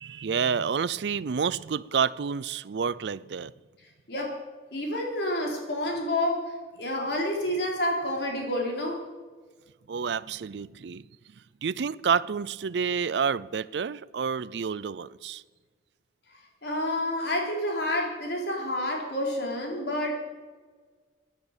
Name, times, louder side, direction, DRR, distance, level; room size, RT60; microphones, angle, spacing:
voice 1, 0.0-3.5 9.9-11.0 11.6-15.4, right 6 dB, 70° right, 0.4 m, -29 dB
voice 2, 4.7-6.4 6.8-9.0 16.6-20.2, left 1 dB, 65° left, 3.9 m, -29 dB
13.0 x 10.5 x 8.9 m
head